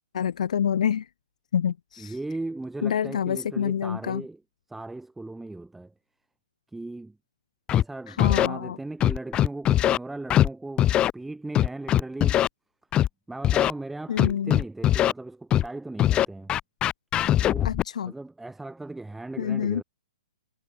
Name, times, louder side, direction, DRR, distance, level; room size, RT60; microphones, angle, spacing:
voice 1, 0.1-1.1 1.5-2.1 2.8-4.2 8.1-8.8 14.1-14.6 17.6-18.1 19.4-19.8, left 8 dB, 70° left, 1.5 m, -27 dB
voice 2, 2.0-4.4 4.7-5.9 6.7-7.2 7.7-10.9 11.1-12.4 13.3-16.5 17.4-17.7 18.0-19.8, right 2 dB, 5° right, 3.8 m, -37 dB
Scratching (performance technique), 7.7-7.8 8.2-8.5 9.0-10.0 10.3-10.5 10.8-11.1 11.5-12.5 12.9-13.1 13.4-13.7 14.2-15.1 15.5-15.7 16.0-17.8, left 12 dB, 25° left, 2.1 m, -21 dB
hypercardioid pair, 130°, 4 cm